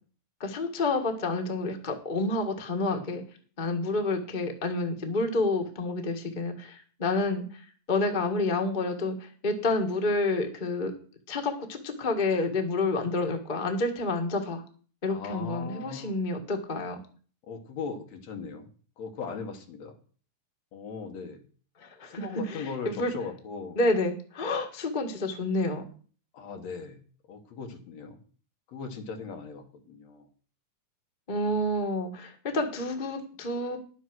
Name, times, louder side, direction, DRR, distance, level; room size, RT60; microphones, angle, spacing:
voice 1, 0.4-3.2 3.6-7.6 7.9-10.9 11.3-14.6 15.0-17.0 21.8-23.1 23.8-25.8 31.3-33.8, left 2 dB, 45° left, 4 dB, 0.6 m, -29 dB
voice 2, 15.1-16.2 17.4-18.7 19.0-20.0 20.7-21.4 22.1-23.8 26.3-27.0 27.3-28.2 28.7-30.3, left 5 dB, 60° left, 4 dB, 2.5 m, -39 dB
11.0 x 7.2 x 6.1 m, 0.41 s
omnidirectional pair, 3.6 m